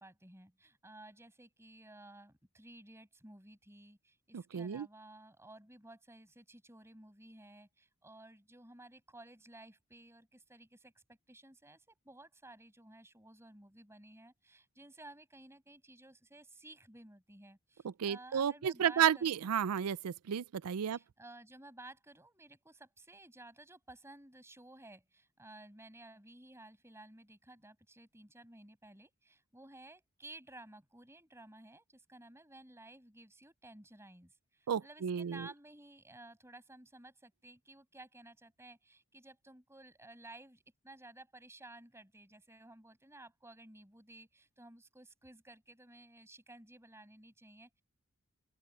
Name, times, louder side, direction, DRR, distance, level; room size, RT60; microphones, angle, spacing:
voice 1, 0.0-19.4 20.9-47.8, right 2 dB, 10° right, 6.5 m, -55 dB
voice 2, 4.3-4.9 18.0-21.0 34.7-35.5, right 8 dB, 85° right, 0.4 m, -32 dB
open air
head